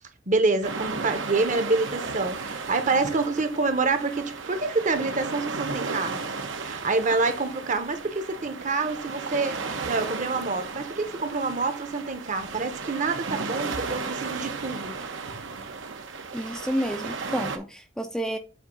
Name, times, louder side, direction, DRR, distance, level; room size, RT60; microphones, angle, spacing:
voice 1, 0.3-6.2 6.6-15.0, right 3 dB, 40° right, 0.9 m, -27 dB
sound 1, 0.6-17.6, right 4 dB, 75° right, 1.0 m, -34 dB
voice 2, 16.3-18.4, equal, 5° left, 0.4 m, -30 dB
8.0 x 2.7 x 5.3 m
head